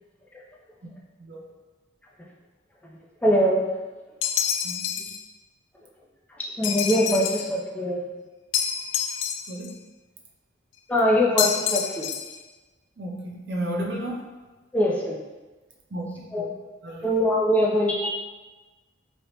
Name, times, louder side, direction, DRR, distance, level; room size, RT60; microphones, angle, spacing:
voice 1, 3.2-3.6 6.6-8.0 10.9-12.1 14.7-15.2 16.3-16.5 17.0-18.1, equal, 10° left, -4 dB, 0.4 m, -22 dB
sound 1, 4.2-5.2 6.6-7.5 8.5-9.7 11.4-12.4, left 8 dB, 85° left, 0.3 m, -27 dB
voice 2, 4.6-5.1 9.5-9.8 13.0-14.2 15.9-16.5 16.8-17.1, right 1 dB, 60° right, 0 dB, 0.6 m, -33 dB
3.1 x 2.8 x 2.9 m, 1.2 s
head